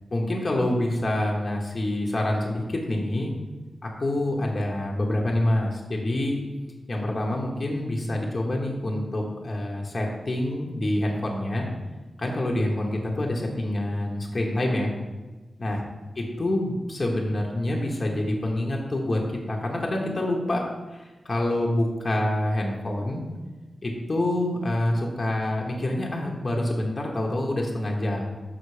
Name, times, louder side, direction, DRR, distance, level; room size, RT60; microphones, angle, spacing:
voice 1, 0.1-3.3 3.8-6.4 6.9-11.7 12.2-14.9 15.6-15.8 16.2-20.6 20.9-23.2 23.8-28.2, left 1 dB, 35° left, -1 dB, 1.0 m, -26 dB
5.9 x 5.7 x 4.8 m, 1.2 s
wide cardioid pair, 125°, 0 cm